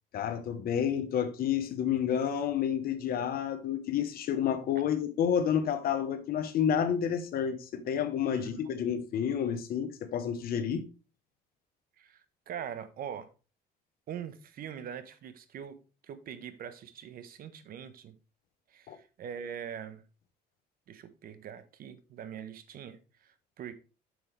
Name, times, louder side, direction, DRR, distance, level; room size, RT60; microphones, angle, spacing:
voice 1, 0.1-10.8 18.9-19.0, left 8 dB, 65° left, 1.1 m, -30 dB
voice 2, 8.3-8.7 12.0-13.3 14.1-15.8 16.0-18.1 18.7-20.0 20.9-23.7, right 8 dB, 60° right, 1.1 m, -43 dB
7.5 x 6.3 x 3.3 m
cardioid pair, 110°, 17 cm